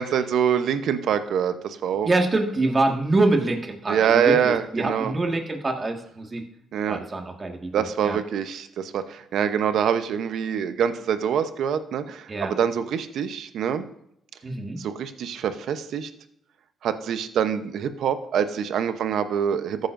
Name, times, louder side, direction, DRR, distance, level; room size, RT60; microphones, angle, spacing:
voice 1, 0.0-1.5 1.8-2.1 3.9-5.1 6.7-7.0 7.7-8.7 8.9-9.0 9.3-12.0 12.4-13.8 14.8-16.1 16.8-19.8, right 8 dB, 75° right, 10 dB, 0.8 m, -24 dB
voice 2, 2.0-6.4 6.9-8.2 12.3-12.5 14.4-14.8, right 2 dB, 30° right, 2 dB, 1.8 m, -25 dB
14.0 x 9.2 x 2.6 m, 0.75 s
cardioid pair, 90°, 0 cm